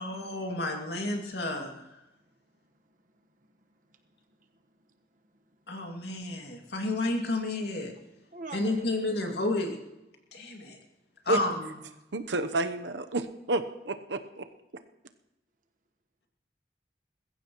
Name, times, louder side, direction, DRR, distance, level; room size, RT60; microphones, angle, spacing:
voice 1, 0.0-2.0 5.7-7.9 8.5-9.8 10.3-10.8 11.2-11.7, left 2 dB, 65° left, 2 dB, 2.4 m, -31 dB
voice 2, 2.9-3.2 3.6-3.7 3.9-5.0 5.5-5.6 8.3-8.9, right 3 dB, 50° right, 5 dB, 1.4 m, -47 dB
voice 3, 12.1-14.5, right 2 dB, 85° right, 8 dB, 0.9 m, -30 dB
21.0 x 15.5 x 3.1 m, 0.96 s
head